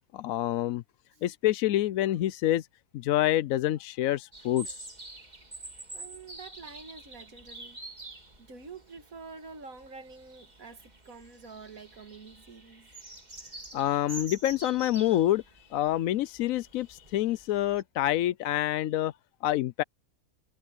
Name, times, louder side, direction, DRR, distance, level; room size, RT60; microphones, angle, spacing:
voice 1, 0.1-0.8 1.2-2.7 2.9-4.9 13.7-15.4 15.7-19.1 19.4-19.8, left 13 dB, 75° left, 1.0 m, -27 dB
sound 1, 4.3-17.8, right 2 dB, 30° right, 3.1 m, -47 dB
voice 2, 5.9-7.8 8.4-12.9, right 4 dB, 70° right, 2.4 m, -47 dB
omnidirectional pair, 1.5 m